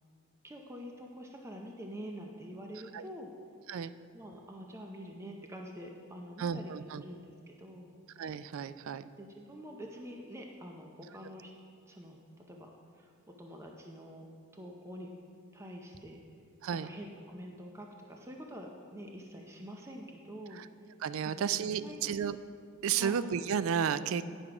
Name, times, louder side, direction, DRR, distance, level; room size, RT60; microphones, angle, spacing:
voice 1, 0.4-3.3 4.1-7.9 9.2-11.5 11.9-12.2 12.5-12.7 13.0-13.1 13.4-14.3 14.5-15.1 15.5-16.2 16.8-20.6 21.8-22.2 23.0-23.2, equal, 15° right, 1 dB, 0.5 m, -46 dB
voice 2, 6.4-7.0 8.2-9.1 16.6-16.9 20.5-20.7 21.0-22.4 22.8-24.2, right 7 dB, 75° right, 14 dB, 0.3 m, -32 dB
10.0 x 6.2 x 4.8 m, 2.3 s
head